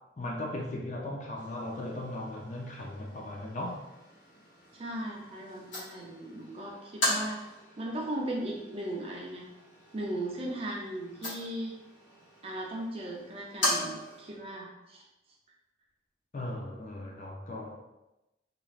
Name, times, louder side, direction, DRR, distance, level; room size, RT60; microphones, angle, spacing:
voice 1, 0.2-3.8 16.3-17.8, left 1 dB, 40° left, 0 dB, 0.4 m, -37 dB
sound 1, 1.4-14.4, left 1 dB, 80° left, 1.3 m, -38 dB
voice 2, 4.7-7.4 7.8-9.4 9.9-11.7 12.4-15.0, right 1 dB, 30° right, -2 dB, 0.5 m, -37 dB
3.1 x 2.5 x 2.4 m, 0.97 s
head